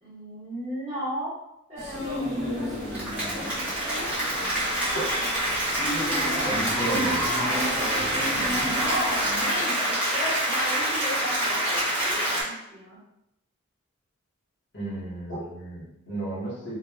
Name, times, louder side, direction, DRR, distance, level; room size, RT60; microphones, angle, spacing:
voice 1, 0.0-1.3 1.7-2.8 3.3-5.0 8.3-13.0, equal, 25° right, -10 dB, 1.3 m, -35 dB
sound 1, 1.8-9.5, equal, 65° right, 1.1 m, -33 dB
Applause, 2.7-12.4, right 1 dB, 5° right, 0.8 m, -26 dB
voice 2, 6.4-7.3 14.7-16.8, right 1 dB, 55° left, -8 dB, 1.0 m, -33 dB
2.9 x 2.2 x 2.2 m, 0.85 s
head